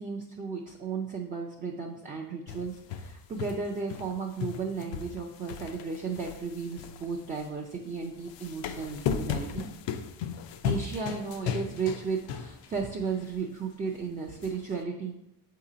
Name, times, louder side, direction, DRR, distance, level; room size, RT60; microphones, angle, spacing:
voice 1, 0.0-9.6 10.6-15.1, right 5 dB, 20° right, -1 dB, 0.4 m, -34 dB
sound 1, 2.5-4.1 4.4-7.5 8.2-12.9 13.3-13.4 14.4-14.5, left 7 dB, 75° left, 0.6 m, -35 dB
7.2 x 2.8 x 4.9 m, 0.86 s
cardioid pair, 160°, 43 cm